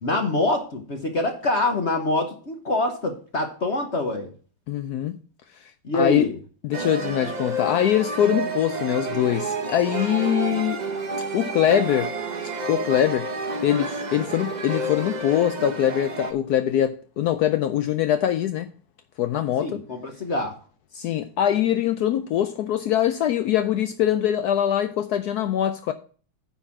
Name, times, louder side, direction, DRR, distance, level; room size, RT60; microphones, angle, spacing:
voice 1, 0.0-4.3 5.8-6.4 19.6-20.5, left 2 dB, 40° left, 1.1 m, -25 dB
voice 2, 4.7-5.2 5.6-6.3 6.6-10.8 11.3-12.1 12.7-13.3 13.6-18.7 19.2-19.8 20.9-25.9, left 11 dB, 85° left, 0.8 m, -23 dB
sound 1, 6.7-16.3, right 3 dB, 40° right, 0.6 m, -30 dB
9.9 x 4.1 x 7.2 m
omnidirectional pair, 2.3 m